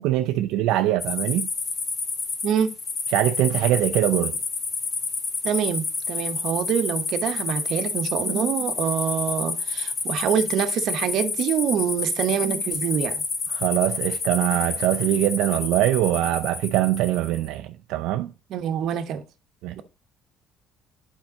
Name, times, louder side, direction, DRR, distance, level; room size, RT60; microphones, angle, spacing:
voice 1, 0.0-1.5 3.1-4.4 13.5-18.3 19.6-19.8, right 14 dB, 85° right, 0.4 m, -23 dB
sound 1, 1.0-17.4, left 4 dB, 45° left, 1.7 m, -29 dB
voice 2, 2.4-2.8 5.4-13.2 18.5-19.2, right 9 dB, 65° right, 0.9 m, -25 dB
8.8 x 4.5 x 3.9 m
cardioid pair, 115°, 0 cm